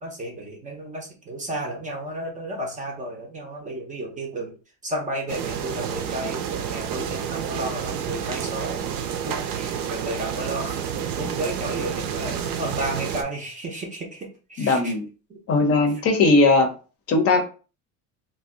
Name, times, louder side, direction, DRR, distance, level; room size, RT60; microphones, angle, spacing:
voice 1, 0.0-4.5 4.8-8.8 9.3-10.8 11.2-14.2 14.5-14.9, right 1 dB, 20° right, 1 dB, 0.5 m, -32 dB
sound 1, 5.3-13.2, right 8 dB, 65° right, 0.6 m, -29 dB
voice 2, 14.6-15.0 15.5-16.7 17.1-17.4, left 3 dB, 40° left, 5 dB, 0.6 m, -18 dB
2.5 x 2.2 x 3.6 m, 0.35 s
cardioid pair, 155°, 37 cm